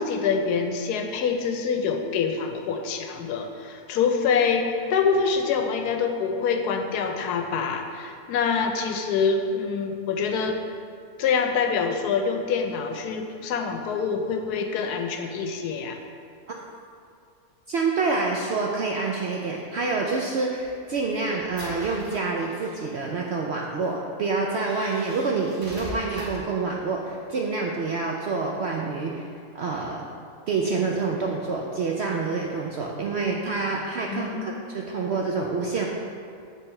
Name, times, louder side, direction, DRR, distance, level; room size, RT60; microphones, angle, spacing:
voice 1, 0.0-10.6 11.2-16.0 34.1-34.7, left 5 dB, 90° left, 5 dB, 1.2 m, -25 dB
voice 2, 17.7-29.3 29.5-30.0 30.5-35.9, right 4 dB, 70° right, -1 dB, 0.6 m, -27 dB
sound 1, 20.6-23.0 23.8-23.9 24.5-26.6, equal, 35° right, 1.3 m, -41 dB
8.6 x 3.3 x 4.3 m, 2.3 s
omnidirectional pair, 1.6 m